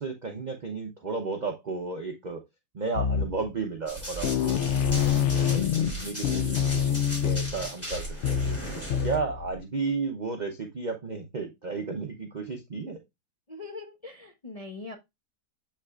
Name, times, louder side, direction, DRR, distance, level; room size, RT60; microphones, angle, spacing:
voice 1, 0.0-2.4 2.7-6.8 7.2-8.4 9.0-13.0, right 4 dB, 40° right, 4 dB, 0.6 m, -33 dB
sound 1, 3.0-3.6 3.9-4.0 4.2-9.6, left 8 dB, 85° left, 0.6 m, -26 dB
Run, 3.9-9.2, equal, 10° left, 3.2 m, -38 dB
voice 2, 13.5-15.0, left 3 dB, 30° left, 3 dB, 0.7 m, -41 dB
7.9 x 5.7 x 2.4 m, 0.21 s
omnidirectional pair, 1.8 m